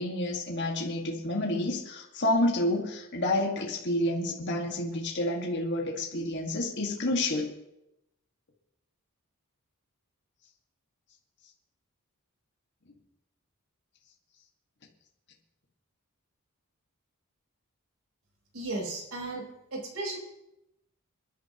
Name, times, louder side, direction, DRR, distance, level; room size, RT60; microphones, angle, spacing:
voice 1, 0.0-7.5, left 1 dB, 50° left, -1 dB, 1.8 m, -29 dB
voice 2, 18.5-19.4 19.7-20.2, right 2 dB, 75° right, -1 dB, 4.7 m, -35 dB
28.0 x 11.0 x 3.0 m, 0.88 s
head